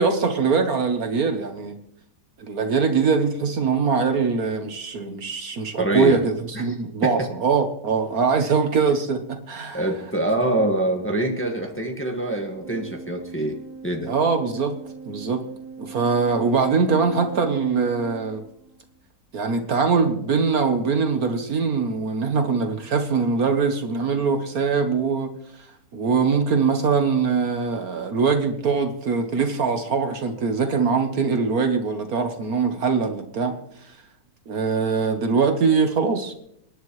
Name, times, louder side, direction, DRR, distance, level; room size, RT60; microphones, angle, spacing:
voice 1, 0.0-1.8 2.4-9.8 14.1-14.8 15.0-15.4 15.8-18.4 19.3-25.3 25.9-33.5 33.8-34.0 34.5-36.3, right 5 dB, 60° right, 6 dB, 1.5 m, -22 dB
voice 2, 5.8-6.2 6.5-6.7 7.0-7.1 9.7-13.5 13.8-14.1, right 1 dB, 5° left, 1 dB, 1.5 m, -25 dB
Organ, 12.5-19.0, right 4 dB, 25° left, 8.2 m, -41 dB
26.5 x 10.5 x 3.2 m, 0.74 s
omnidirectional pair, 1.9 m